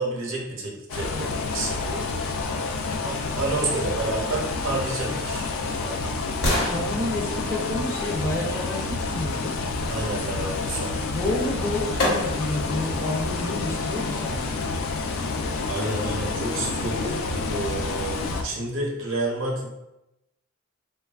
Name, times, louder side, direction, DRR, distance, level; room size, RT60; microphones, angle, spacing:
voice 1, 0.0-2.1 3.0-5.5 5.8-6.0 9.9-10.9 15.7-17.2 17.5-19.8, right 2 dB, 65° right, -1 dB, 0.7 m, -30 dB
sound 1, 0.9-18.4, left 3 dB, 80° left, 0.3 m, -29 dB
voice 2, 6.6-9.5 11.1-14.6, left 2 dB, 15° left, -3 dB, 0.4 m, -29 dB
sound 2, 12.0-12.7 13.2-13.3, left 1 dB, 55° left, 1.0 m, -31 dB
3.0 x 2.2 x 2.3 m, 0.92 s
head